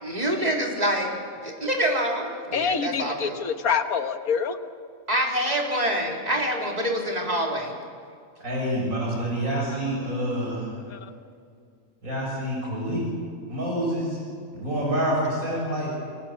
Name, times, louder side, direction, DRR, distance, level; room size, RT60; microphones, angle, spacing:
voice 1, 0.0-1.1 1.4-3.4 5.1-7.7, equal, 30° right, -1 dB, 3.8 m, -26 dB
voice 2, 2.5-4.6 10.9-11.1, left 6 dB, 85° left, 8 dB, 1.8 m, -26 dB
voice 3, 8.4-10.7 12.0-13.0 13.5-14.2 14.5-15.9, right 1 dB, 75° right, -3 dB, 7.6 m, -27 dB
30.0 x 21.0 x 7.4 m, 2.2 s
omnidirectional pair, 1.5 m